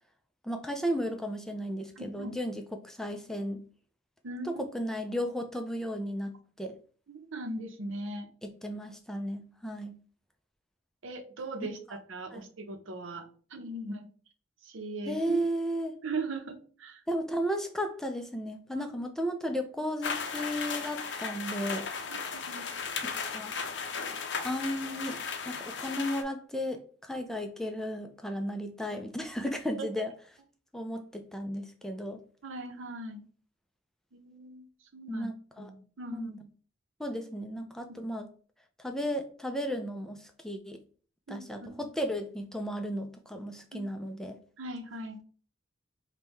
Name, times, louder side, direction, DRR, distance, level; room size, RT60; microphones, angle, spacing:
voice 1, 0.4-3.6 4.5-6.3 6.6-6.7 8.4-10.0 12.3-12.4 15.1-16.0 17.1-21.9 23.1-23.5 24.4-25.2 25.5-30.1 30.7-32.2 35.1-35.7 36.1-36.4 37.0-38.3 38.8-40.8 41.3-44.4, equal, 5° left, 5 dB, 0.3 m, -34 dB
voice 2, 2.0-2.3 4.2-4.6 7.1-8.3 11.0-14.1 14.6-15.4 16.0-17.0 18.7-18.9 22.1-22.7 29.7-29.9 32.4-33.2 34.1-34.7 34.9-35.3 35.6-36.3 41.3-41.9 43.7-43.9 44.6-45.2, right 2 dB, 85° right, 7 dB, 0.7 m, -39 dB
sound 1, 20.0-26.2, left 5 dB, 60° left, 0.5 m, -36 dB
5.2 x 2.2 x 3.1 m, 0.41 s
head